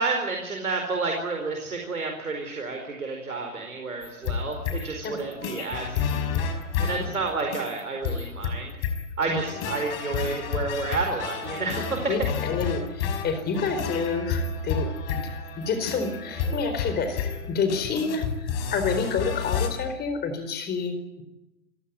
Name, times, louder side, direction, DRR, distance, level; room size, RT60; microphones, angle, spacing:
voice 1, 0.0-6.5 6.8-8.7 9.2-12.0 12.6-12.7, right 3 dB, 80° right, 3 dB, 4.6 m, -30 dB
sound 1, 4.0-19.7, left 6 dB, 40° left, 5.6 m, -30 dB
voice 2, 12.1-15.2 15.6-21.2, left 5 dB, 25° left, 8 dB, 4.3 m, -29 dB
28.5 x 16.5 x 9.6 m, 0.95 s
figure-of-eight pair, 110°, 43 cm